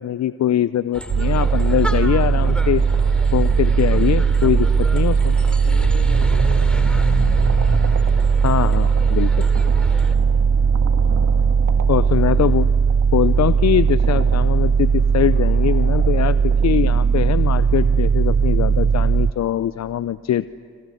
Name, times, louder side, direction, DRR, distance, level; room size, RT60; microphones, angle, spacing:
voice 1, 0.0-2.8 3.3-5.4 8.4-9.5 11.9-12.7 13.1-20.5, left 11 dB, 60° left, 15 dB, 0.6 m, -22 dB
sound 1, 0.9-10.1, equal, 5° left, 3.2 m, -29 dB
sound 2, 1.1-19.3, right 6 dB, 35° right, 0.7 m, -18 dB
sound 3, 1.4-18.6, right 6 dB, 70° right, 2.4 m, -37 dB
voice 2, 5.3-8.0 10.8-11.3 12.0-12.4, left 5 dB, 80° left, 3 dB, 3.2 m, -41 dB
28.5 x 26.5 x 7.9 m, 2.2 s
supercardioid pair, 45°, 31 cm